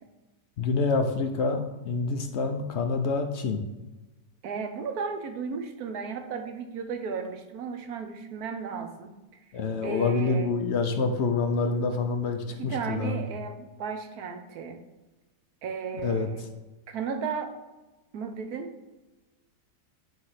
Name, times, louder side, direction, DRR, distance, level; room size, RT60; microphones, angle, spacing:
voice 1, 0.6-3.6 9.5-13.2 16.0-16.3, left 4 dB, 60° left, 5 dB, 0.7 m, -27 dB
voice 2, 4.4-9.2 9.8-10.5 12.5-14.8 15.6-16.4 16.9-17.5 18.1-18.7, right 5 dB, 65° right, 6 dB, 1.3 m, -34 dB
9.1 x 3.3 x 5.7 m, 1.1 s
omnidirectional pair, 1.8 m